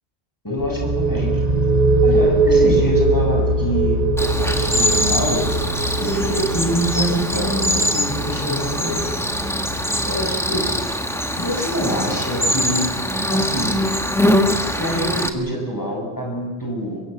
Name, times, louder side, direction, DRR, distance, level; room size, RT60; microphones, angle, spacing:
voice 1, 0.4-1.3 2.0-4.0 4.4-5.5 6.0-9.1 10.1-10.7 11.4-12.9 13.3-13.8 14.8-17.0, equal, 20° left, 0 dB, 7.1 m, -25 dB
sound 1, 0.6-12.1, right 2 dB, 40° right, 1.7 m, -22 dB
Cricket, 4.2-15.3, equal, ahead, 1.6 m, -23 dB
24.0 x 22.0 x 8.0 m, 1.3 s
omnidirectional pair, 1.1 m